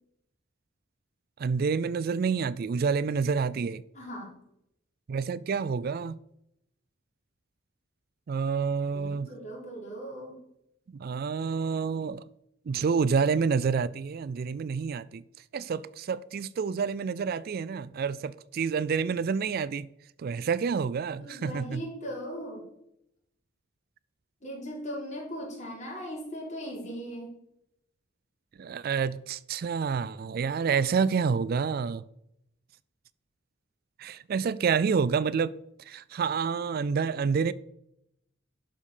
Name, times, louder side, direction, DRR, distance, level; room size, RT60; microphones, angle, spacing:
voice 1, 1.4-3.8 5.1-6.2 8.3-9.3 10.9-12.2 12.7-15.2 15.5-19.9 20.2-21.8 28.6-32.0 34.0-35.5 35.9-37.5, right 5 dB, 50° right, 0.3 m, -28 dB
voice 2, 3.9-4.3 8.9-10.4 21.2-22.6 24.4-27.3, equal, 35° left, 4.4 m, -38 dB
11.5 x 5.3 x 6.6 m
head